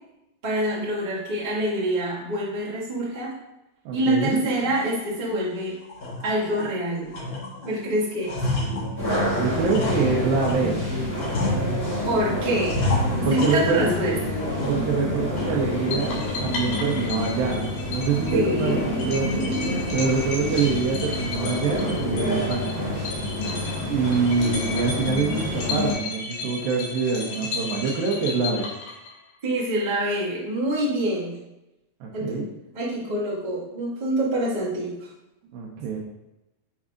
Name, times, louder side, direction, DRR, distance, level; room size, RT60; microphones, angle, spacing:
voice 1, 0.4-3.3 3.9-5.7 6.2-7.1 7.6-8.3 12.0-12.8 13.2-14.1 18.3-18.8 29.4-31.4 32.1-32.4 32.7-35.1, right 1 dB, 40° right, -8 dB, 0.6 m, -26 dB
voice 2, 3.9-4.4 9.4-10.8 13.2-14.2 14.7-19.5 19.9-22.9 23.9-28.7 32.0-32.5 35.5-36.0, right 4 dB, 75° right, -2 dB, 2.3 m, -25 dB
sound 1, 4.6-4.8 5.3-5.4 5.8-6.7 7.1-7.7 8.0-10.7 11.1-12.1 12.6-14.1 14.4-15.0 15.4-15.5 16.0-16.3, left 1 dB, 65° left, 1.2 m, -29 dB
sound 2, 9.0-25.9, left 1 dB, 35° left, 0.8 m, -28 dB
sound 3, 15.9-29.3, left 3 dB, 80° left, 3.4 m, -34 dB
7.1 x 5.4 x 2.5 m, 0.95 s
omnidirectional pair, 4.8 m